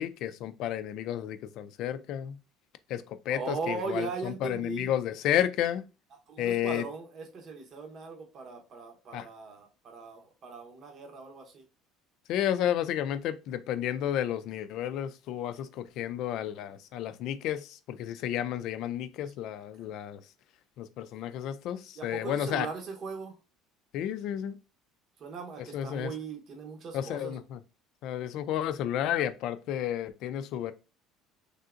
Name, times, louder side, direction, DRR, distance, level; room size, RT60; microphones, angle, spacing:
voice 1, 0.0-2.4 2.9-5.8 6.4-6.9 9.1-9.3 12.3-20.2 20.8-22.7 23.9-24.6 25.6-26.1 26.9-27.6 28.0-30.7, left 11 dB, 65° left, 0.3 m, -32 dB
voice 2, 3.3-4.9 6.3-11.6 19.8-19.9 22.0-23.3 25.2-27.3, right 4 dB, 50° right, 0.8 m, -39 dB
3.4 x 2.7 x 2.4 m
supercardioid pair, 95°, 0 cm